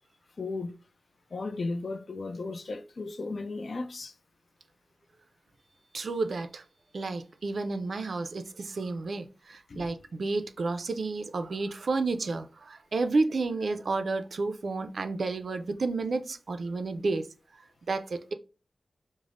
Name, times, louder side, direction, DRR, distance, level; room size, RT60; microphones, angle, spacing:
voice 1, 0.4-0.8 1.3-4.1 9.7-9.9, left 3 dB, 55° left, 0.4 m, -35 dB
voice 2, 5.9-6.6 6.9-17.3 17.5-18.3, right 3 dB, 65° right, 0.4 m, -31 dB
5.0 x 2.0 x 2.4 m
wide cardioid pair, 100°, 0 cm